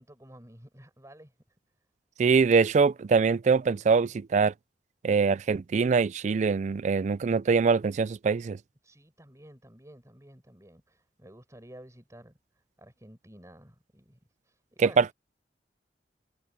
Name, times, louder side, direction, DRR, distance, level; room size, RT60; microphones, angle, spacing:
voice 1, 0.0-1.3 8.8-15.1, right 1 dB, 20° right, 5.7 m, -52 dB
voice 2, 2.2-4.5 5.0-8.6 14.8-15.1, right 5 dB, 40° right, 0.3 m, -23 dB
head